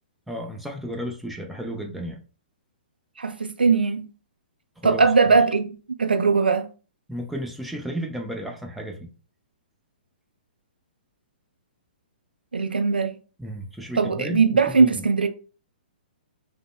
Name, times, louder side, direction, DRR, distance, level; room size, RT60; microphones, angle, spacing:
voice 1, 0.3-2.2 4.8-5.0 7.1-9.1 13.4-15.0, equal, ahead, 0.6 m, -33 dB
voice 2, 3.2-4.1 4.8-6.7 12.5-13.1 14.0-15.3, right 4 dB, 80° right, 0.5 m, -20 dB
5.0 x 2.1 x 2.2 m
figure-of-eight pair, 120°, 5 cm